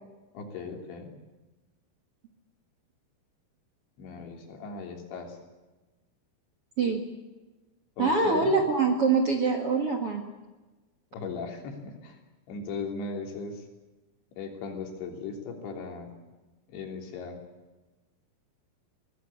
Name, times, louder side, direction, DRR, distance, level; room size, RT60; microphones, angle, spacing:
voice 1, 0.3-1.1 4.0-5.4 8.0-8.5 11.1-12.2 12.5-13.7 14.4-16.1 16.7-17.4, left 4 dB, 80° left, 3 dB, 5.5 m, -37 dB
voice 2, 8.0-10.2, right 4 dB, 50° right, 4 dB, 1.8 m, -24 dB
23.0 x 18.0 x 8.6 m, 1.2 s
omnidirectional pair, 5.1 m